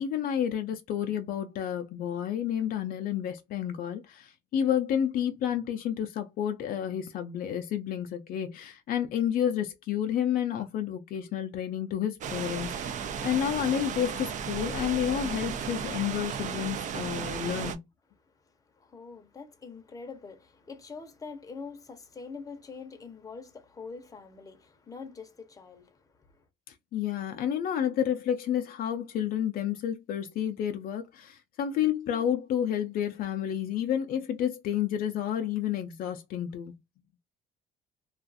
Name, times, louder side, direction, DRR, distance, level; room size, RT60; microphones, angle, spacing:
voice 1, 0.0-17.8 26.9-36.7, left 9 dB, 60° left, 0.4 m, -30 dB
sound 1, 12.2-17.8, right 7 dB, 45° right, 0.4 m, -34 dB
voice 2, 18.4-26.4, left 4 dB, 20° left, 0.6 m, -45 dB
2.4 x 2.3 x 2.5 m
cardioid pair, 110°, 17 cm